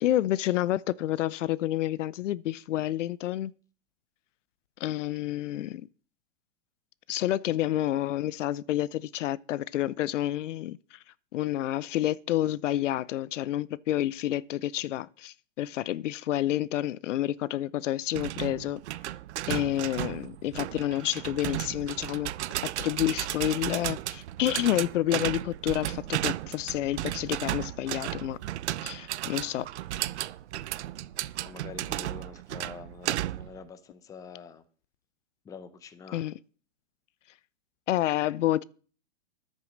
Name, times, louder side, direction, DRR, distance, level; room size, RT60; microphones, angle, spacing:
voice 1, 0.0-3.5 4.8-5.9 7.1-11.0 11.3-18.8 19.5-22.3 22.6-28.4 28.8-29.7 36.1-36.3 37.9-38.6, left 13 dB, 70° left, 0.6 m, -29 dB
sound 1, 18.1-33.6, right 14 dB, 60° right, 0.7 m, -34 dB
voice 2, 31.5-34.6 35.4-36.3, left 6 dB, 10° left, 0.6 m, -46 dB
10.5 x 8.2 x 6.5 m
hypercardioid pair, 150°, 38 cm